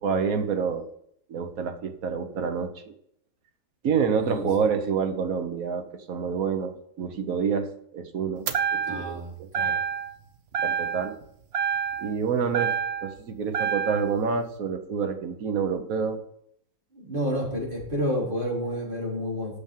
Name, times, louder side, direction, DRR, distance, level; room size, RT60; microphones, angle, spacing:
voice 1, 0.0-0.9 1.3-2.7 3.8-9.5 10.6-11.1 12.0-16.2, right 6 dB, 70° right, 6 dB, 1.5 m, -28 dB
sound 1, 8.5-9.2 9.5-10.2 10.5-11.2 11.5-13.2 13.5-14.2, right 7 dB, 50° right, 0.9 m, -28 dB
voice 2, 8.8-9.8 16.9-19.6, equal, 35° right, -4 dB, 4.2 m, -30 dB
8.7 x 7.1 x 7.4 m, 0.71 s
omnidirectional pair, 1.5 m